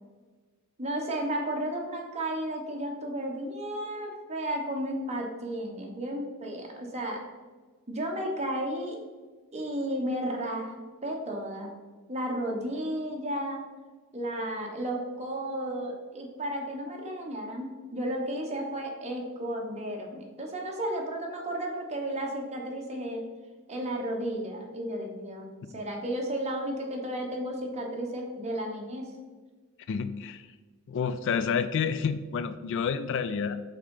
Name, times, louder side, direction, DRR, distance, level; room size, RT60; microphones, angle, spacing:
voice 1, 0.8-7.2 7.9-9.0 9.5-10.7 11.0-11.7 12.1-13.7 14.1-23.2 23.7-25.5 25.7-29.1, right 1 dB, 30° right, 1 dB, 1.0 m, -33 dB
voice 2, 29.9-30.5 30.9-33.6, left 6 dB, 60° left, 12 dB, 0.3 m, -29 dB
5.3 x 3.8 x 5.3 m, 1.3 s
head